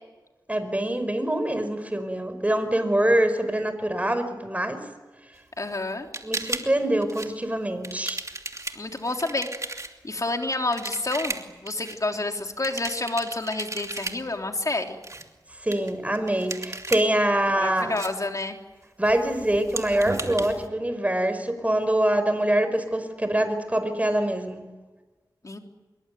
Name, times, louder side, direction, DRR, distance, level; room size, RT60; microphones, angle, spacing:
voice 1, 0.5-4.8 6.2-8.2 15.6-17.9 19.0-24.7, right 1 dB, 20° right, 9 dB, 5.2 m, -24 dB
voice 2, 5.6-6.1 8.7-9.5 10.0-15.0 17.6-18.6 25.4-25.6, left 2 dB, 45° left, 3 dB, 3.4 m, -29 dB
sound 1, 6.1-6.7 7.0-7.3 7.8-9.9 10.7-12.0 12.6-14.2 14.9-15.2 15.7-17.1 18.0-18.1 19.0-20.7, right 2 dB, 40° right, 2.8 m, -34 dB
25.5 x 23.0 x 9.4 m, 1.2 s
wide cardioid pair, 60°, 8 cm